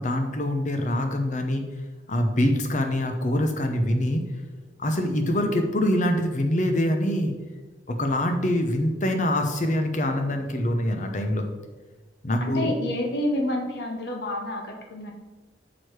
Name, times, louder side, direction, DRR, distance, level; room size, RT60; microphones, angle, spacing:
voice 1, 0.0-1.6 2.1-4.2 4.8-7.3 7.9-11.4 12.2-12.7, left 1 dB, 40° left, 5 dB, 0.7 m, -24 dB
voice 2, 12.4-15.1, left 1 dB, 60° left, 1 dB, 1.0 m, -28 dB
6.2 x 4.6 x 4.6 m, 1.2 s
head